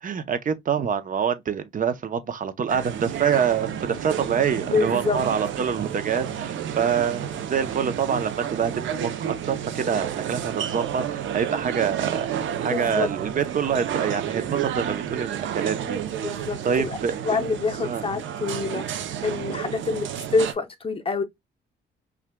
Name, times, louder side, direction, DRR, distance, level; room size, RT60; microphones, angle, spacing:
voice 1, 0.0-8.7 9.0-12.3 12.6-16.3 16.6-17.4 17.8-18.1, right 7 dB, 45° right, 0.8 m, -26 dB
sound 1, 2.7-20.5, right 9 dB, 75° right, 0.7 m, -31 dB
voice 2, 4.5-5.2 12.7-13.1 16.2-16.9 17.2-18.9 19.2-21.2, left 4 dB, 25° left, 0.9 m, -26 dB
5.7 x 2.5 x 2.2 m
cardioid pair, 90°, 20 cm